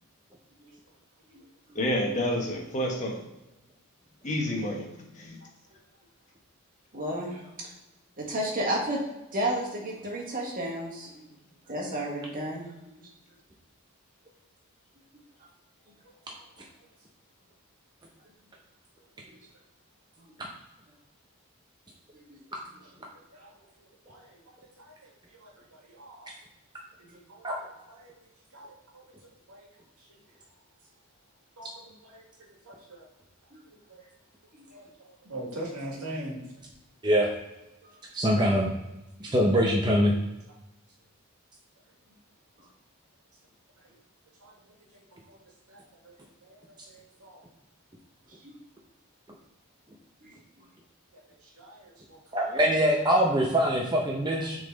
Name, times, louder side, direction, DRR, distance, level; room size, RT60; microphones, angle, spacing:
voice 1, 1.7-3.2 4.2-4.9 5.1-5.4, left 1 dB, 35° left, 0 dB, 1.3 m, -29 dB
voice 2, 6.9-7.7 8.2-9.0 9.3-11.2 11.7-13.1 20.2-20.3 22.3-22.4 27.0-27.2 33.5-33.6 48.4-48.5 50.2-50.3, right 1 dB, 40° right, -2 dB, 1.6 m, -32 dB
voice 3, 16.0-16.6 19.0-19.1 22.8-22.9 23.1-26.3 27.0-28.2 28.5-29.0 29.5-29.7 30.0-30.2 31.6-33.1 33.7-34.1 34.7-36.4 42.1-42.2 43.8-43.9 44.4-44.5 44.9-45.4 45.7-47.4 51.1-52.6 52.9-53.2 54.4-54.5, right 1 dB, 85° right, -2 dB, 1.9 m, -45 dB
voice 4, 38.1-38.7 39.2-40.1 52.3-54.6, equal, 20° right, -2 dB, 0.7 m, -23 dB
6.4 x 4.0 x 3.9 m, 0.98 s
head